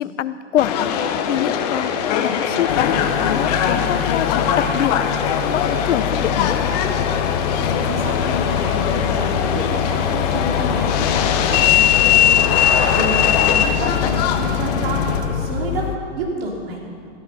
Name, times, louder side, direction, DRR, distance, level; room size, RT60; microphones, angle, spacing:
voice 1, 0.0-4.9 5.4-6.7 13.8-14.1, left 11 dB, 70° left, 15 dB, 0.7 m, -25 dB
Subway metro underground, 0.6-15.2, left 8 dB, 30° left, 0.9 m, -20 dB
sound 1, 2.7-16.0, left 8 dB, 90° left, 1.1 m, -25 dB
voice 2, 7.5-12.3 12.7-16.8, right 2 dB, 50° right, -2 dB, 3.7 m, -29 dB
14.5 x 13.5 x 5.5 m, 2.4 s
hypercardioid pair, 150°, 38 cm